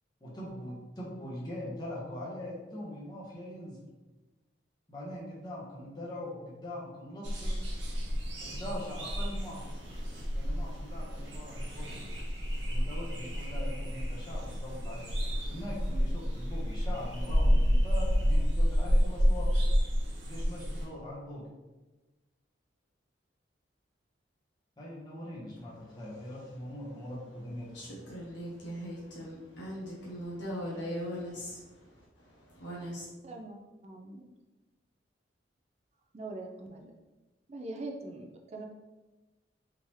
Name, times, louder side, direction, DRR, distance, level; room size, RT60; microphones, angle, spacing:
voice 1, 0.2-3.8 4.9-7.6 8.4-9.8 10.3-12.0 12.7-19.5 20.3-21.4 24.8-27.7, left 1 dB, 20° left, -6 dB, 1.0 m, -42 dB
sound 1, 7.2-20.8, equal, 75° right, 0.8 m, -30 dB
voice 2, 27.7-33.1, equal, 75° left, -5 dB, 0.9 m, -40 dB
voice 3, 33.2-34.3 36.1-36.9 37.5-38.7, right 2 dB, 35° right, 2 dB, 0.4 m, -42 dB
3.7 x 2.8 x 3.0 m, 1.2 s
head